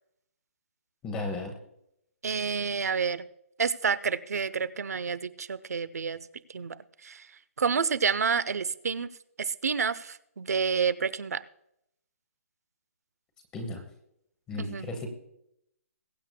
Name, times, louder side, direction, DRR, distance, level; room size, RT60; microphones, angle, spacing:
voice 1, 1.0-1.5 13.5-13.8 14.5-15.1, left 2 dB, 10° left, 4 dB, 0.9 m, -34 dB
voice 2, 2.2-3.3 3.6-6.2 6.5-6.8 7.0-7.3 7.6-9.1 9.4-11.4 14.6-14.9, right 6 dB, 75° right, 16 dB, 0.8 m, -29 dB
21.5 x 8.5 x 2.2 m, 0.76 s
hypercardioid pair, 175°, 8 cm